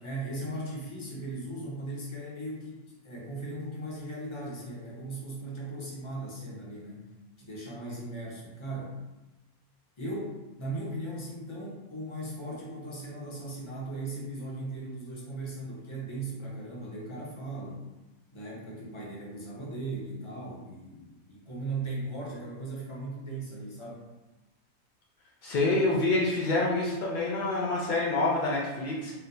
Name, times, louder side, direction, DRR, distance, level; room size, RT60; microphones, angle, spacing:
voice 1, 0.0-7.1 7.4-9.0 10.0-17.9 18.3-24.1, right 2 dB, 30° left, -5 dB, 0.6 m, -38 dB
voice 2, 25.4-29.1, left 2 dB, 90° left, -4 dB, 0.4 m, -27 dB
4.2 x 2.1 x 2.6 m, 1.1 s
omnidirectional pair, 1.5 m